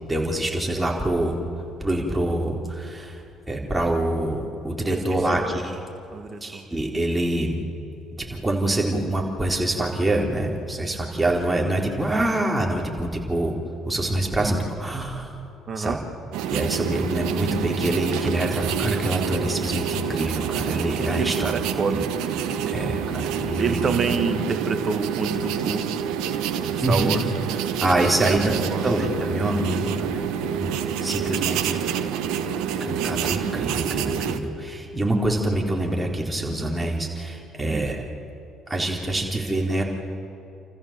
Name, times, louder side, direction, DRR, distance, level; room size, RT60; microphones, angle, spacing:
voice 1, 0.1-1.4 1.8-3.2 3.5-5.7 6.4-7.6 8.3-13.6 13.9-15.3 15.8-16.0 16.5-21.5 21.9-22.0 22.7-23.8 26.8-27.1 27.8-30.2 30.5-31.8 32.8-38.0 38.7-39.8, right 1 dB, 15° right, -1 dB, 4.2 m, -25 dB
voice 2, 6.1-6.6 14.4-14.5 15.7-16.0 21.2-22.3 23.6-25.9 26.7-27.2 28.2-28.9 37.6-37.9, right 5 dB, 45° right, 8 dB, 2.0 m, -28 dB
sound 1, 16.3-34.4, right 8 dB, 75° right, 1.0 m, -27 dB
29.5 x 14.5 x 7.6 m, 2.7 s
hypercardioid pair, 55°, 0 cm